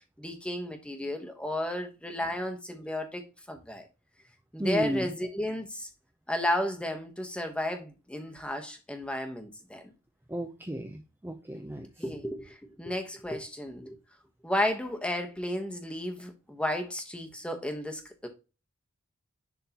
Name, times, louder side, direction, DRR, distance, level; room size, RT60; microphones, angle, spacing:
voice 1, 0.2-3.2 3.5-3.9 4.5-5.9 6.3-9.9 11.5-11.6 12.0-14.0 14.4-18.3, left 1 dB, 5° left, 1.1 m, -33 dB
voice 2, 4.6-5.1 10.3-11.9, equal, 10° right, 0.5 m, -34 dB
10.5 x 3.7 x 2.9 m
head